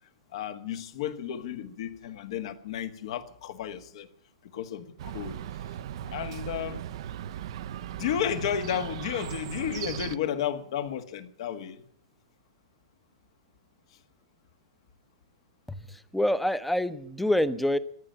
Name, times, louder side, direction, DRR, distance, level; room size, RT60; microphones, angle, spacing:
voice 1, 0.3-4.1 4.5-5.4 6.1-6.8 7.9-11.8, left 9 dB, 60° left, 1.6 m, -32 dB
Chirp tweet, 5.0-10.2, right 11 dB, 60° right, 0.6 m, -38 dB
voice 2, 15.7-17.8, left 1 dB, ahead, 0.8 m, -27 dB
14.5 x 10.5 x 9.1 m
hypercardioid pair, 130°, 3 cm